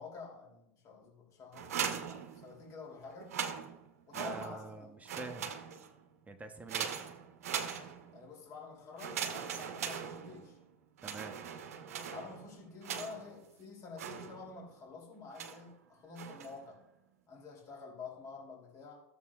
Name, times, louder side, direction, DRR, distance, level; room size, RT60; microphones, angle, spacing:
voice 1, 0.0-3.3 4.1-4.9 8.1-10.6 12.1-16.8 17.3-19.0, left 4 dB, 45° left, -1 dB, 2.9 m, -49 dB
sound 1, 1.5-2.8 3.2-4.8 5.0-6.0 6.7-8.3 9.0-10.6 11.0-13.4 14.0-14.7 15.4-15.7 16.1-16.6, right 8 dB, 85° right, 0.8 m, -40 dB
voice 2, 4.1-5.5 6.3-6.9 11.0-11.3, right 3 dB, 20° right, 5 dB, 0.9 m, -46 dB
14.0 x 7.1 x 2.4 m, 0.83 s
hypercardioid pair, 95°, 8 cm